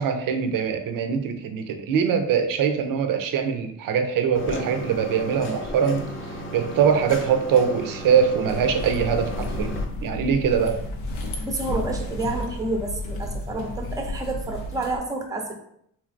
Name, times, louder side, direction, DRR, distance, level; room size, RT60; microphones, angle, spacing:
voice 1, 0.0-6.1 6.5-9.8 10.0-10.8, right 7 dB, 70° right, 7 dB, 0.5 m, -22 dB
sound 1, 4.3-9.9, equal, 35° left, 0.6 m, -35 dB
sound 2, 8.5-15.0, left 1 dB, 85° left, 0.6 m, -32 dB
voice 2, 11.4-15.5, right 2 dB, 10° right, 3 dB, 0.6 m, -29 dB
3.2 x 2.8 x 2.5 m, 0.72 s
supercardioid pair, 65°, 35 cm